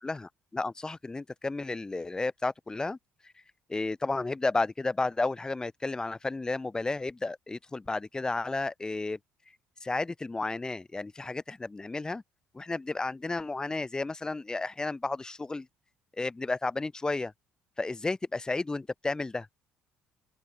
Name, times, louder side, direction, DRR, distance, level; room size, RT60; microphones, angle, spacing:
voice 1, 0.0-3.0 3.7-9.2 9.8-12.2 12.5-15.7 16.2-17.3 17.8-19.5, left 3 dB, 20° left, 2.0 m, -32 dB
open air
supercardioid pair, 85°, 4 cm